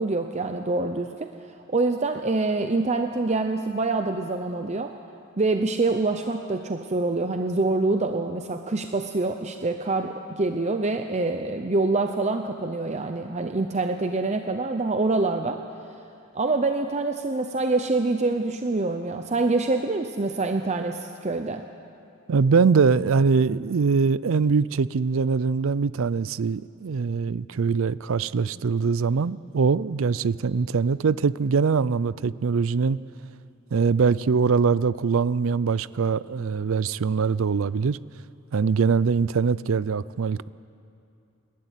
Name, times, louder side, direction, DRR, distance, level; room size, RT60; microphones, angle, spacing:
voice 1, 0.0-1.3 1.7-4.9 5.4-15.6 16.3-21.6, right 3 dB, 30° right, 0.7 m, -25 dB
voice 2, 22.3-33.0 33.7-38.0 38.5-40.5, right 5 dB, 65° right, 0.4 m, -22 dB
29.5 x 12.5 x 9.1 m
head